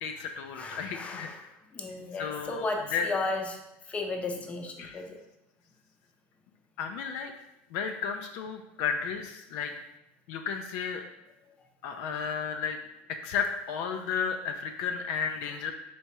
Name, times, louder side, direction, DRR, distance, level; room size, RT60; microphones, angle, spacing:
voice 1, 0.0-1.3 2.2-2.6 2.9-3.1 4.8-5.0 6.8-7.3 7.7-9.7 10.3-11.0 11.8-12.8 13.2-15.7, left 6 dB, 65° left, 5 dB, 0.4 m, -33 dB
voice 2, 0.5-1.4 1.7-3.6 3.9-5.2, left 3 dB, 20° left, 3 dB, 0.6 m, -34 dB
4.3 x 3.4 x 2.9 m, 0.88 s
supercardioid pair, 120°, 6 cm